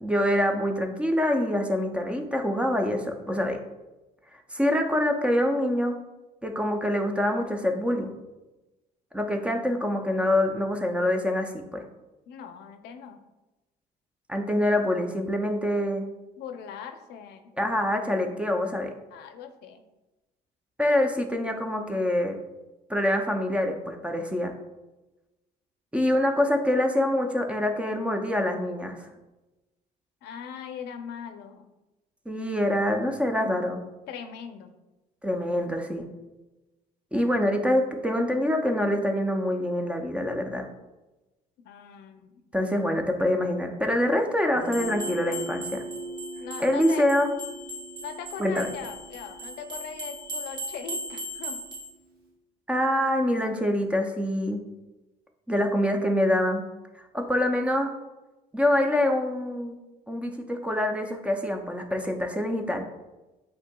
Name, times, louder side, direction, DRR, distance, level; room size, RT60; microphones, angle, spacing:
voice 1, 0.0-3.6 4.5-6.0 6.4-8.1 9.1-11.9 14.3-16.1 17.6-18.9 20.8-22.4 22.9-24.5 25.9-29.1 32.3-33.8 35.2-36.1 37.1-40.7 42.5-45.8 46.6-47.3 48.4-48.7 52.7-54.6 55.5-56.6 57.0-57.9 58.5-59.8 60.1-62.9, left 1 dB, 5° right, 4 dB, 0.5 m, -25 dB
voice 2, 12.3-13.2 16.4-17.5 19.1-19.8 30.2-31.7 34.1-34.7 41.6-42.4 46.4-47.1 48.0-51.6, left 7 dB, 75° left, 7 dB, 0.5 m, -40 dB
Guitar, 44.5-52.2, right 2 dB, 65° right, 0.9 m, -41 dB
sound 1, 44.7-51.9, equal, 25° right, 1.1 m, -38 dB
8.1 x 2.7 x 2.2 m, 1.1 s
cardioid pair, 110°, 17 cm